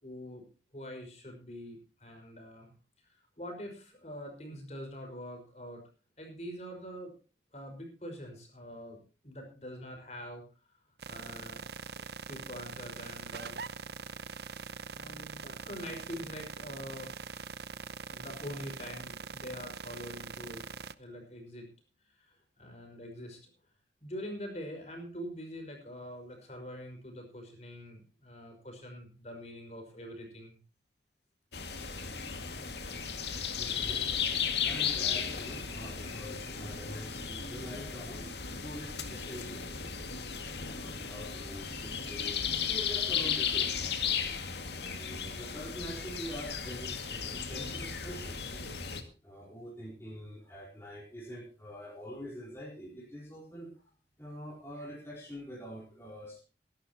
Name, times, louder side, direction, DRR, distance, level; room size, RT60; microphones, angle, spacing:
voice 1, 0.0-0.4 0.7-2.7 3.0-5.8 6.2-7.1 7.5-10.4 11.1-11.6 12.0-13.6 14.9-17.1 18.1-20.7 21.0-21.7 22.1-23.5 24.0-30.6, equal, 40° left, 3 dB, 5.3 m, -44 dB
sound 1, 11.0-20.9, right 5 dB, 70° right, 0.7 m, -43 dB
sound 2, 31.5-49.0, left 7 dB, 75° left, 2.1 m, -35 dB
voice 2, 33.5-34.1 34.6-38.3 38.6-40.2 40.7-42.4 42.7-44.4 44.6-48.8 49.2-53.9 54.2-56.4, equal, 15° left, -3 dB, 4.3 m, -45 dB
23.5 x 11.5 x 2.9 m, 0.35 s
head